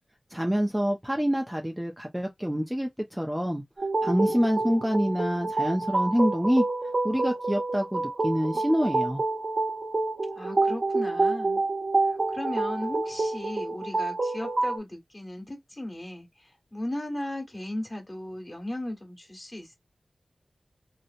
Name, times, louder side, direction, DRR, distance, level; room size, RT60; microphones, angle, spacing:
voice 1, 0.3-3.6 4.0-6.6 7.0-9.2, equal, 10° right, 0.5 m, -26 dB
sound 1, 3.8-14.8, right 3 dB, 60° right, 1.0 m, -28 dB
voice 2, 10.3-11.6 12.0-19.7, left 1 dB, 30° left, 1.3 m, -36 dB
2.8 x 2.0 x 2.5 m
cardioid pair, 55°, 0 cm